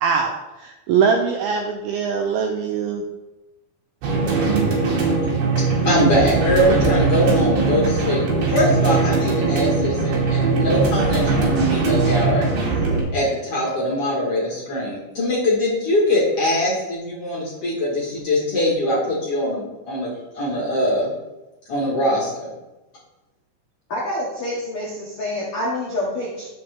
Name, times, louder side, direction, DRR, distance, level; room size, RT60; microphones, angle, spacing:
voice 1, 0.0-3.0, right 6 dB, 85° right, 3 dB, 2.2 m, -22 dB
sound 1, 4.0-13.0, right 3 dB, 65° right, 3.8 m, -20 dB
voice 2, 5.6-12.5 13.1-21.1 21.7-22.5, left 1 dB, 50° left, -5 dB, 1.8 m, -22 dB
voice 3, 23.9-26.5, left 1 dB, 90° left, -5 dB, 1.2 m, -27 dB
10.5 x 7.0 x 3.5 m, 1.0 s
omnidirectional pair, 5.1 m